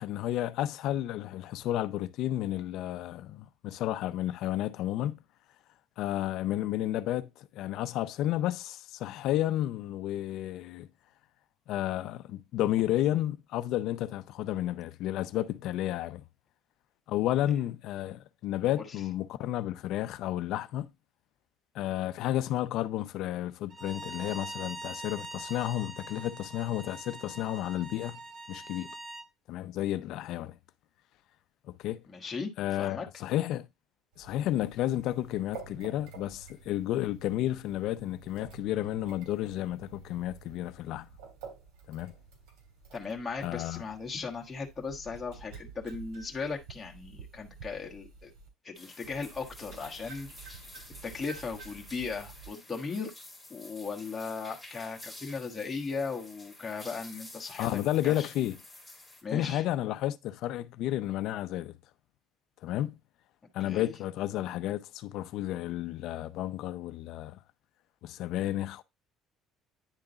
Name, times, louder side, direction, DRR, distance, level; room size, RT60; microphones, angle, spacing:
voice 1, 0.0-5.2 6.0-10.9 11.7-16.2 17.1-20.9 21.7-28.2 28.5-28.9 29.5-30.6 31.7-32.0 32.6-33.7 34.2-41.1 41.9-42.2 43.4-43.8 57.6-58.6 59.3-61.7 62.6-63.0 63.5-67.4 68.0-68.8, left 13 dB, 65° left, 0.5 m, -32 dB
Bowed string instrument, 23.7-29.3, right 2 dB, 35° right, 0.8 m, -43 dB
voice 2, 32.1-32.5 32.8-33.1 42.9-48.3 48.6-50.6 51.0-53.1 53.5-58.3 59.2-59.6 63.6-63.9, left 4 dB, 15° left, 1.3 m, -37 dB
sound 1, 34.1-48.5 49.0-52.5, right 5 dB, 85° right, 2.9 m, -50 dB
sound 2, 48.8-59.2, left 2 dB, 5° right, 2.3 m, -50 dB
9.9 x 3.7 x 3.9 m
cardioid pair, 135°, 0 cm